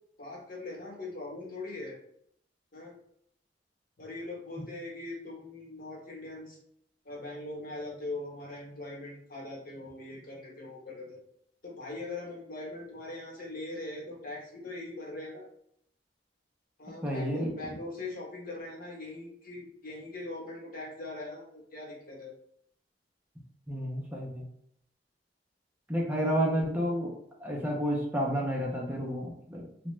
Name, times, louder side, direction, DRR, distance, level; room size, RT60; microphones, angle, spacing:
voice 1, 0.2-2.0 2.7-2.9 4.0-6.6 7.0-11.2 11.6-15.5 16.8-22.3 26.0-26.3, left 2 dB, 50° left, -3 dB, 1.0 m, -41 dB
voice 2, 17.0-17.5 23.7-24.4 25.9-27.1 27.4-29.6, equal, 10° right, -3 dB, 0.5 m, -30 dB
2.9 x 2.1 x 3.1 m, 0.70 s
head